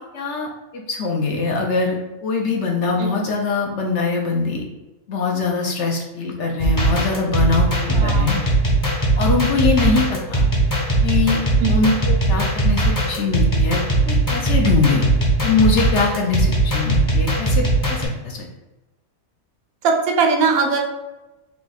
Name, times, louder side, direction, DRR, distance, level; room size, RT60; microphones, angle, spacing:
voice 1, 0.1-4.6 5.1-8.4 9.2-10.5 11.0-11.4 11.7-13.8 14.1-15.0 15.4-18.5, left 4 dB, 65° left, 0 dB, 0.8 m, -22 dB
sound 1, 6.6-18.0, right 1 dB, 20° left, 0.7 m, -19 dB
voice 2, 7.9-8.3 11.6-11.9 19.8-20.8, right 5 dB, 80° right, 2 dB, 1.1 m, -20 dB
3.4 x 2.3 x 4.0 m, 1.0 s
omnidirectional pair, 1.5 m